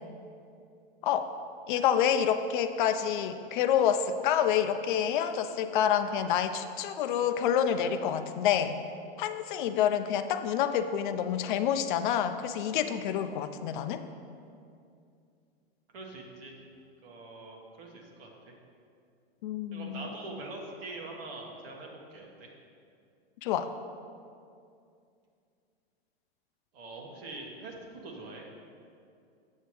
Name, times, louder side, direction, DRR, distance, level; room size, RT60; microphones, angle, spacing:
voice 1, 1.7-8.7 9.2-14.0 19.4-20.1 23.4-23.7, left 9 dB, 50° left, 9 dB, 0.5 m, -28 dB
voice 2, 15.9-16.6 17.0-18.5 19.7-22.5 26.7-28.5, right 2 dB, 65° right, 0 dB, 1.5 m, -44 dB
8.1 x 6.8 x 3.1 m, 2.4 s
hypercardioid pair, 120°, 32 cm